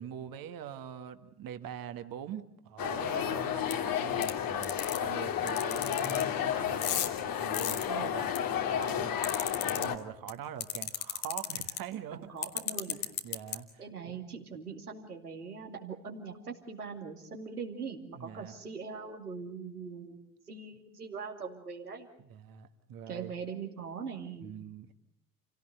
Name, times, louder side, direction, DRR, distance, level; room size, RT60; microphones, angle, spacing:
voice 1, 0.0-7.0 7.3-9.2 9.6-12.3 13.2-14.3 18.1-18.5 22.2-23.3 24.4-24.9, right 9 dB, 50° right, 9 dB, 1.9 m, -44 dB
sound 1, 2.8-10.0, left 9 dB, 50° left, 1.9 m, -32 dB
sound 2, 3.7-3.8 4.2-4.3 4.6-5.0 5.5-6.2 6.7-8.4 8.8-9.8 10.3-10.4 10.6-11.8 12.4-13.5, left 11 dB, 70° left, 2.0 m, -33 dB
voice 2, 12.1-13.0 13.8-22.1 23.1-24.5, right 5 dB, 85° right, 3 dB, 2.5 m, -42 dB
28.5 x 17.5 x 8.0 m, 0.72 s
figure-of-eight pair, 55°, 44 cm